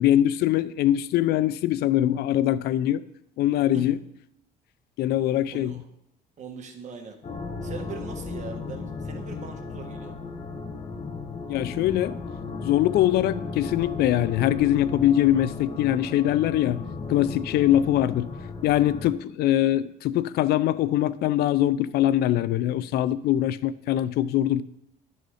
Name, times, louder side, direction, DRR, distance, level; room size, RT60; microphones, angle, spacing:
voice 1, 0.0-3.0 3.4-4.0 5.0-5.7 11.5-12.2 12.6-16.8 17.1-18.3 18.6-24.6, left 12 dB, 70° left, 0.4 m, -22 dB
voice 2, 5.5-5.9 6.4-7.2 7.6-10.2, right 5 dB, 45° right, 1.3 m, -40 dB
sound 1, 7.2-19.1, left 4 dB, 35° left, 1.1 m, -35 dB
11.0 x 4.1 x 4.9 m
cardioid pair, 110°, 17 cm